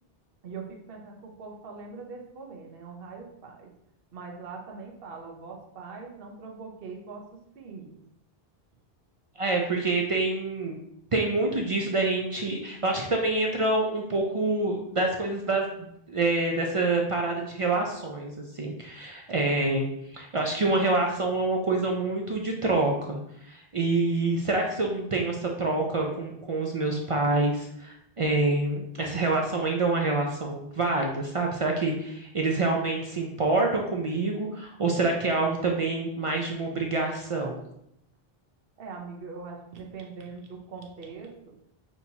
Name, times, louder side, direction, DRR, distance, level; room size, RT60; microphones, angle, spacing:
voice 1, 0.4-3.7 4.1-8.0 38.8-41.5, right 4 dB, 65° right, 1 dB, 1.0 m, -42 dB
voice 2, 9.4-10.8 11.1-23.2 23.5-37.6, right 2 dB, 50° right, 0 dB, 0.4 m, -27 dB
6.0 x 2.8 x 2.7 m, 0.76 s
omnidirectional pair, 1.0 m